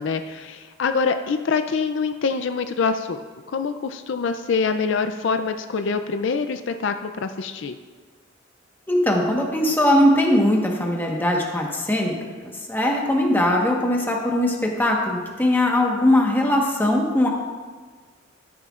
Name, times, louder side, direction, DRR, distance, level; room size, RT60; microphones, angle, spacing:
voice 1, 0.0-7.8, left 5 dB, 65° left, 8 dB, 0.4 m, -25 dB
voice 2, 8.9-12.1 12.4-17.3, left 1 dB, 10° left, -1 dB, 1.2 m, -20 dB
13.0 x 11.0 x 2.5 m, 1.5 s
head